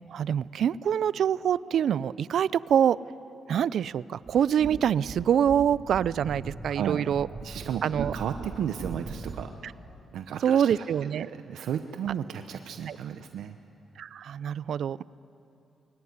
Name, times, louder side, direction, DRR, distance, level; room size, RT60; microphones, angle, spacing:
voice 1, 0.1-3.0 3.5-7.3 7.8-8.1 10.4-11.3 12.9-13.0 14.0-15.0, right 9 dB, 70° right, 19 dB, 0.4 m, -25 dB
sound 1, 4.2-9.6, right 4 dB, 40° right, 2.6 m, -40 dB
voice 2, 6.7-7.1 7.4-9.5 10.1-10.9 11.1-13.6, right 9 dB, 85° right, 7 dB, 0.8 m, -34 dB
23.0 x 17.5 x 9.9 m, 2.8 s
cardioid pair, 120°, 0 cm